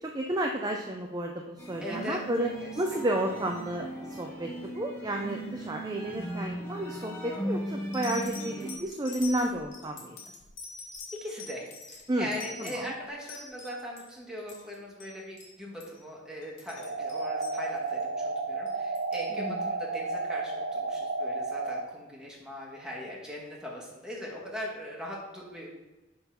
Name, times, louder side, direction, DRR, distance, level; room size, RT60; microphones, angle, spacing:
voice 1, 0.0-2.5 2.8-3.9 4.2-10.2 12.1-12.3 12.6-12.9 19.3-19.7, right 1 dB, 20° right, 2 dB, 0.5 m, -31 dB
sound 1, 1.6-8.7, right 1 dB, 15° left, 1.2 m, -38 dB
voice 2, 1.8-2.7 11.1-25.7, equal, 5° right, -3 dB, 1.6 m, -40 dB
sound 2, 7.1-7.4 7.9-14.1 14.4-15.1 15.4-15.5 15.8-16.0 16.4-18.0 18.7-19.3 20.2-20.3, left 3 dB, 70° left, 2.1 m, -45 dB
sound 3, 16.8-21.8, right 3 dB, 65° right, 0.6 m, -32 dB
8.1 x 3.8 x 5.9 m, 1.1 s
head